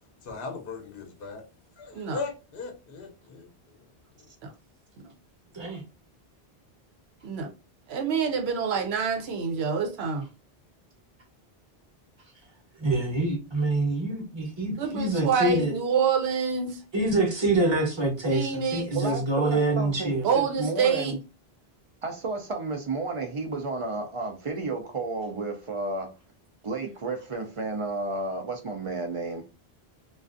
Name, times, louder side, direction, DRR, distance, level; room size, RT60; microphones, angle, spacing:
voice 1, 0.2-1.4 1.8-3.9 4.2-4.3, left 4 dB, 65° left, 0.8 m, -38 dB
voice 2, 7.9-10.3 14.8-16.8 18.3-18.9 20.2-21.1, right 6 dB, 85° right, 0.8 m, -26 dB
voice 3, 12.8-15.7 16.9-20.3, right 2 dB, 30° right, 0.8 m, -26 dB
voice 4, 18.9-21.2 22.0-26.2 26.6-29.4, right 3 dB, 50° right, 0.4 m, -32 dB
2.4 x 2.3 x 2.4 m
omnidirectional pair, 1.0 m